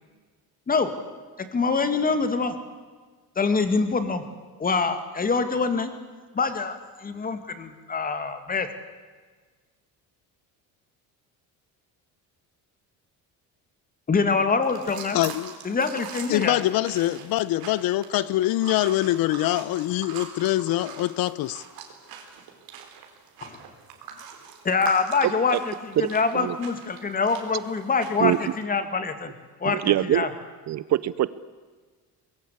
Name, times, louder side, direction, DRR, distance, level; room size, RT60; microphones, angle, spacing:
voice 1, 1.4-2.6 3.4-4.2 4.6-5.9 6.3-8.7 14.1-15.2 15.6-16.6 23.4-23.6 24.6-29.3 29.6-30.3, left 4 dB, 25° left, 2.2 m, -25 dB
sound 1, 14.6-28.6, right 7 dB, 65° right, 4.1 m, -42 dB
voice 2, 15.1-15.5 16.3-21.6, left 15 dB, 70° left, 0.8 m, -24 dB
voice 3, 29.7-30.3 30.7-31.3, right 13 dB, 45° right, 0.7 m, -23 dB
24.0 x 21.5 x 8.3 m
cardioid pair, 155°, 37 cm